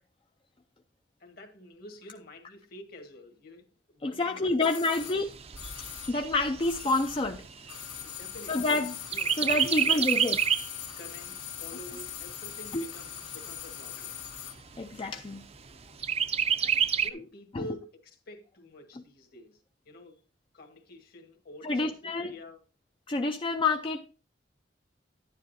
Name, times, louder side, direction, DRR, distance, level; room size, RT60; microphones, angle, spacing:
voice 1, 1.2-5.0 8.0-8.7 9.1-9.4 9.6-10.1 11.0-14.2 16.5-19.6 19.8-20.2 20.5-22.6, left 1 dB, 55° left, 1.6 m, -48 dB
voice 2, 4.0-5.3 6.1-7.5 8.5-9.0 9.4-10.4 12.7-12.8 14.8-15.4 21.6-22.3 23.1-24.1, left 3 dB, 30° left, 0.5 m, -28 dB
sound 1, 4.6-7.4 7.6-14.6 14.9-15.0, left 12 dB, 75° left, 1.0 m, -42 dB
Chirp tweet, 5.0-8.7 9.1-10.8 11.2-11.3 11.7-12.7 13.3-13.4 13.7-13.8 14.2-14.8 16.0-17.1, right 8 dB, 35° right, 0.6 m, -28 dB
10.5 x 9.8 x 2.7 m
head